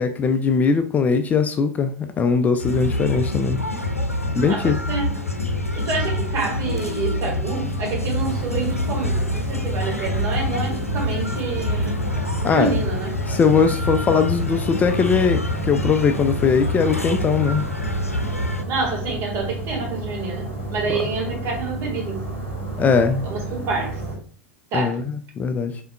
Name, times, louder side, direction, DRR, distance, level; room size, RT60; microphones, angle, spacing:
voice 1, 0.0-3.6 4.3-4.8 12.4-12.7 13.3-17.7 20.9-21.0 22.8-23.3 24.7-25.0 25.4-25.8, left 5 dB, 20° left, 0.4 m, -20 dB
sound 1, 2.6-18.6, left 1 dB, 90° left, 0.6 m, -26 dB
voice 2, 4.5-5.1 5.7-12.0 12.4-13.1 18.7-22.3 23.2-24.0 24.7-25.0, right 4 dB, 40° right, 1.7 m, -28 dB
sound 2, 8.0-24.2, right 2 dB, 85° right, 2.2 m, -31 dB
5.5 x 3.8 x 2.3 m
figure-of-eight pair, 85°, 7 cm